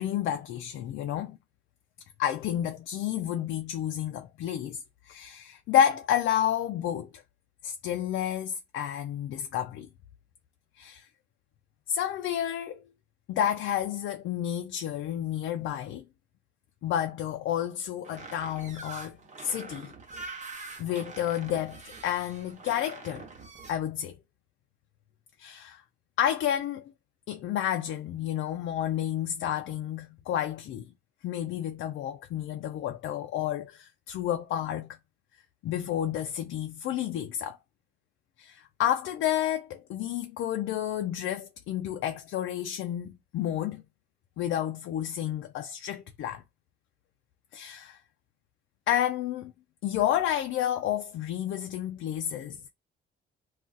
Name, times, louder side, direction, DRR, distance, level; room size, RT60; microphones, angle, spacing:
voice 1, 0.0-1.4 2.2-4.8 5.1-7.2 7.6-9.9 10.8-11.1 11.9-12.8 13.3-16.1 16.8-19.9 20.8-23.2 23.7-24.2 25.4-25.8 26.2-26.8 27.3-30.9 31.2-35.0 35.6-37.6 38.4-43.8 44.4-46.4 47.5-48.0 48.9-49.5 49.8-52.6, left 10 dB, 75° left, 0.4 m, -30 dB
sound 1, 18.0-23.7, right 3 dB, 35° right, 1.0 m, -44 dB
2.4 x 2.3 x 3.9 m
cardioid pair, 90°, 20 cm